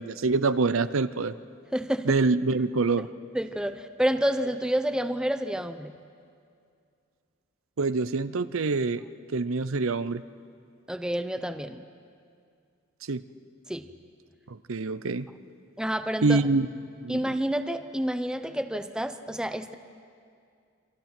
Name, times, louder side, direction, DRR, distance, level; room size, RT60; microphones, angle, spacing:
voice 1, 0.0-1.3 2.0-3.1 7.8-9.0 9.3-10.2 13.0-13.2 14.5-15.3 16.2-16.7 17.0-17.3, right 3 dB, 80° right, 13 dB, 0.7 m, -25 dB
voice 2, 1.7-2.1 3.3-5.9 10.9-11.8 13.7-13.9 15.8-16.4 17.1-19.8, equal, 5° right, 9 dB, 0.8 m, -29 dB
27.5 x 25.0 x 6.0 m, 2.3 s
head